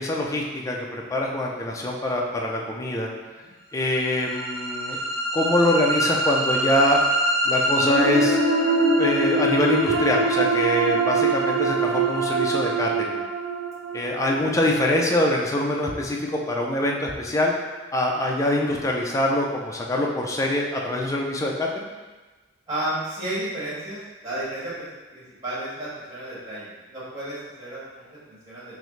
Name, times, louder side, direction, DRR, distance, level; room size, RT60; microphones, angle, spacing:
voice 1, 0.0-3.1 3.7-5.0 5.3-7.0 7.4-8.4 9.0-13.2 13.9-17.5 17.9-21.9, left 1 dB, 15° left, -1 dB, 0.5 m, -24 dB
sound 1, 3.9-16.0, right 2 dB, 75° right, 0.8 m, -24 dB
voice 2, 22.7-28.8, right 1 dB, 20° right, -9 dB, 1.4 m, -33 dB
5.9 x 2.1 x 3.1 m, 1.2 s
head